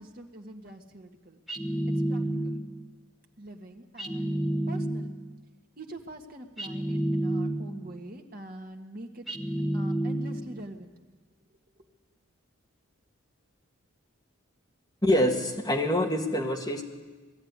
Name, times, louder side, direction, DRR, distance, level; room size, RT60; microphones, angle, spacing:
voice 1, 0.0-1.4 1.9-2.6 3.4-4.3 4.7-5.1 5.8-9.3 9.7-10.9, right 1 dB, 45° right, 3 dB, 1.6 m, -44 dB
sound 1, 1.5-2.8 4.0-5.3 6.6-7.9 9.3-10.6, right 1 dB, ahead, 1.1 m, -30 dB
voice 2, 15.0-16.8, left 1 dB, 20° left, 0 dB, 1.9 m, -25 dB
20.0 x 13.5 x 9.6 m, 1.3 s
head